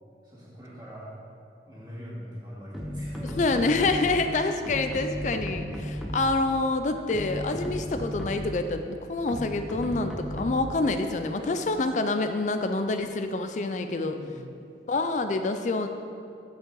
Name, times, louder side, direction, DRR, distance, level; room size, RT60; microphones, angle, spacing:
voice 1, 0.2-1.2 1.6-3.5 4.1-4.3 11.3-11.9 14.0-14.5, equal, 15° right, -15 dB, 2.3 m, -43 dB
sound 1, 2.7-4.3 4.6-6.4 7.0-8.6 9.3-10.8, equal, ahead, 0.7 m, -35 dB
voice 2, 3.4-14.1 14.9-15.9, left 3 dB, 40° left, 8 dB, 0.4 m, -27 dB
14.0 x 5.3 x 3.9 m, 2.6 s
head